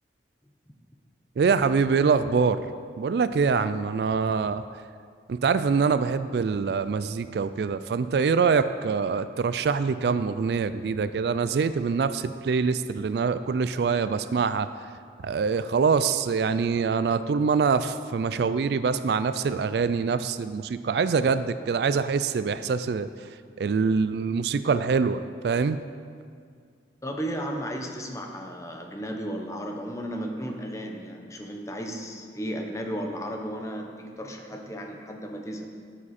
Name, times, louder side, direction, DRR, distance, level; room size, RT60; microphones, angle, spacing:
voice 1, 1.4-2.7 3.0-4.6 5.3-14.7 15.2-23.1 23.6-25.8, right 5 dB, 65° right, 13 dB, 0.3 m, -24 dB
voice 2, 27.0-35.7, equal, 15° left, 2 dB, 0.8 m, -34 dB
13.0 x 7.4 x 4.2 m, 2.2 s
head